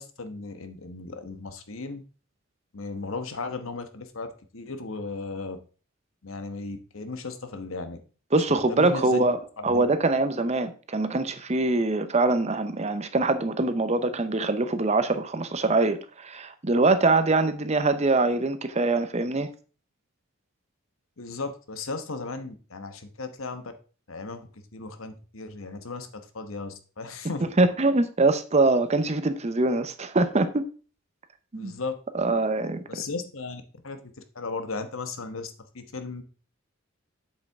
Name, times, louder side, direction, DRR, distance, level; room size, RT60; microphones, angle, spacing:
voice 1, 0.0-2.0 2.7-4.3 4.5-5.6 6.2-8.0 8.5-9.3 9.6-9.8 21.2-23.7 24.1-27.4 31.5-31.9 32.9-36.2, left 3 dB, 75° left, 1.2 m, -36 dB
voice 2, 8.3-9.4 9.6-19.5 27.6-30.6 31.5-31.7 32.1-33.0, right 2 dB, 30° right, 0.7 m, -23 dB
7.5 x 7.5 x 3.6 m
head